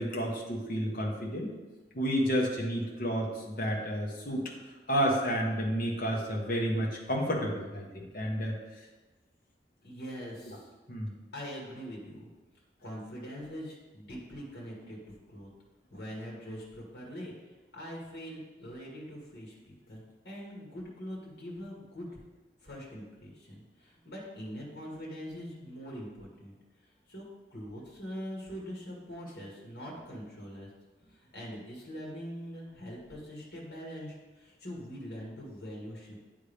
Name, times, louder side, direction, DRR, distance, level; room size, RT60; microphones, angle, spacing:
voice 1, 0.0-1.5 1.9-4.4 4.9-8.5 10.5-10.6 10.9-11.1, equal, 50° left, -1 dB, 1.2 m, -30 dB
voice 2, 9.8-10.7 11.3-12.3 12.8-15.0 15.3-15.5 15.9-17.3 17.7-22.2 22.6-26.5 27.1-27.2 27.5-30.7 31.1-36.2, equal, 80° left, -3 dB, 1.8 m, -43 dB
9.8 x 3.6 x 3.4 m, 1.2 s
head